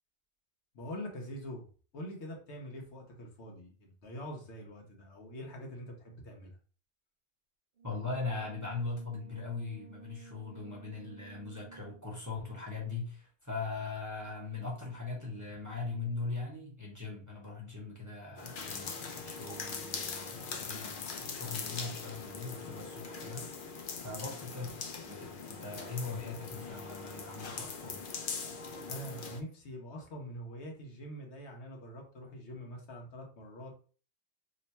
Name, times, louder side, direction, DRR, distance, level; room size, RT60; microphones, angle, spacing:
voice 1, 0.7-1.6 1.9-6.5 24.1-24.2 28.7-33.7, equal, 75° left, 1 dB, 1.2 m, -44 dB
voice 2, 7.8-28.1, left 3 dB, 20° right, -2 dB, 0.7 m, -40 dB
Brass instrument, 7.8-12.1, right 5 dB, 60° right, 0.8 m, -54 dB
sound 1, 18.4-29.4, left 5 dB, 55° left, 0.7 m, -41 dB
3.0 x 2.1 x 4.1 m, 0.40 s
omnidirectional pair, 1.2 m